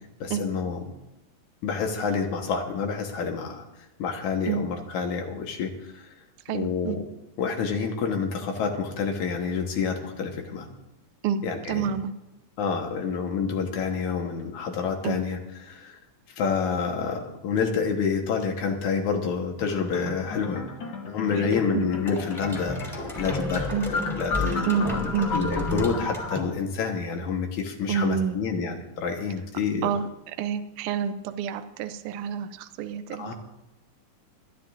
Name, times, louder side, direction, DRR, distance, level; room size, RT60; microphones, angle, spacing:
voice 1, 0.2-0.8 1.6-3.6 4.0-6.1 6.5-7.0 7.4-10.7 11.4-11.9 12.6-15.4 15.6-16.0 16.4-20.7 21.0-22.8 23.1-24.7 25.3-29.9 33.2-33.3, left 5 dB, 75° left, 3 dB, 2.7 m, -28 dB
voice 2, 6.5-7.0 11.2-11.4 11.7-12.1 15.0-15.2 21.4-21.9 23.7-23.8 24.7-25.3 27.9-28.4 29.8-30.1 30.4-33.3, right 7 dB, 85° right, 9 dB, 1.3 m, -28 dB
sound 1, 19.6-26.4, left 4 dB, 50° left, 1.8 m, -34 dB
sound 2, 22.1-26.9, equal, ahead, 2.6 m, -32 dB
25.5 x 10.0 x 2.6 m, 0.96 s
omnidirectional pair, 3.5 m